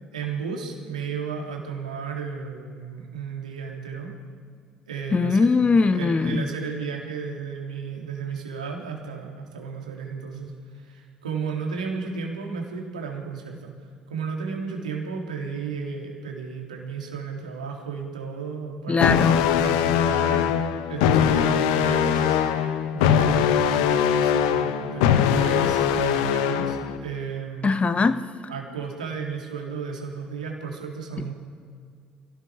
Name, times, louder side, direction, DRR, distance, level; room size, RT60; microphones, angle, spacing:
voice 1, 0.1-4.1 4.9-5.5 5.7-13.7 14.1-22.4 22.9-27.7 28.5-31.3, right 5 dB, 80° right, 0 dB, 3.6 m, -33 dB
voice 2, 5.1-6.5 18.9-19.4 27.6-28.2, left 4 dB, 30° left, 11 dB, 1.4 m, -21 dB
sound 1, 19.0-27.0, left 9 dB, 70° left, 1.2 m, -21 dB
28.5 x 17.5 x 5.2 m, 2.2 s
figure-of-eight pair, 50°, 4 cm